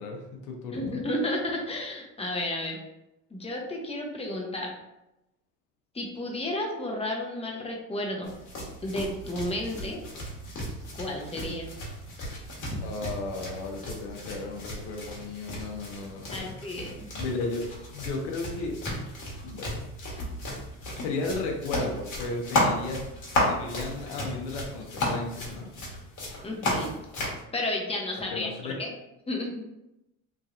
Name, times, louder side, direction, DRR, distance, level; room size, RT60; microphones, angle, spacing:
voice 1, 0.0-1.0 12.8-16.5 17.1-17.6 17.9-18.8 19.4-19.8 20.9-23.0 23.5-25.7 28.3-28.8, left 3 dB, 90° left, 2 dB, 0.7 m, -34 dB
voice 2, 0.7-2.8 3.3-4.7 5.9-8.3 8.8-10.0 10.9-11.7 16.3-17.1 26.4-27.0 27.5-28.9 29.3-29.6, left 1 dB, 15° left, 0 dB, 0.7 m, -32 dB
sound 1, 8.3-27.4, left 1 dB, 60° left, 1.2 m, -34 dB
3.2 x 2.6 x 2.4 m, 0.90 s
supercardioid pair, 95°, 35 cm